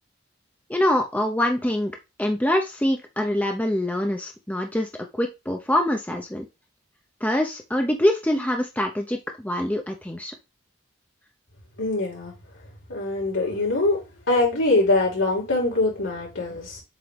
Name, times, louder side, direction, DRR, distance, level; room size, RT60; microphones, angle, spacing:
voice 1, 0.7-4.9 5.2-6.5 7.2-10.3, left 1 dB, 10° left, 3 dB, 0.8 m, -24 dB
voice 2, 11.8-12.3 12.9-14.0 14.3-16.8, left 2 dB, 80° left, -1 dB, 3.9 m, -23 dB
7.8 x 3.8 x 3.4 m, 0.24 s
head